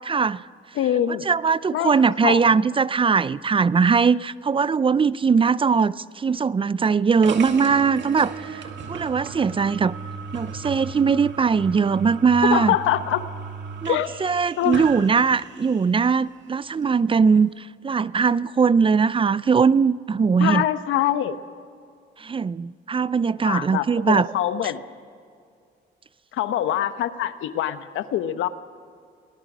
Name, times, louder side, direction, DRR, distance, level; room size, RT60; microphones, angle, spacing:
voice 1, 0.1-0.4 1.1-9.9 10.3-12.8 13.8-20.6 22.2-24.3, right 5 dB, 25° right, 0.4 m, -20 dB
voice 2, 0.8-1.3 1.7-2.5 12.4-13.2 13.9-14.1 14.6-14.8 20.4-21.4 23.4-24.8 26.3-28.5, left 11 dB, 85° left, 1.0 m, -24 dB
sound 1, 7.2-16.0, right 5 dB, 65° right, 2.2 m, -36 dB
23.5 x 18.5 x 6.1 m
cardioid pair, 90°, 20 cm